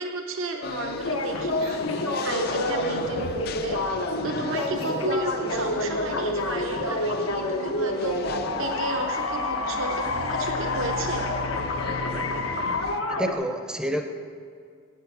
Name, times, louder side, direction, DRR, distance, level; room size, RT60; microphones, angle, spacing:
voice 1, 0.0-1.8 2.2-3.8 4.2-8.2 8.6-11.2, right 2 dB, 70° right, 3 dB, 0.8 m, -32 dB
sound 1, 0.6-13.0, left 4 dB, 50° left, 0.4 m, -37 dB
sound 2, 1.0-13.3, left 2 dB, 85° left, 0.9 m, -28 dB
voice 2, 13.1-14.0, equal, 5° right, 5 dB, 0.6 m, -28 dB
8.3 x 7.7 x 7.8 m, 2.1 s
head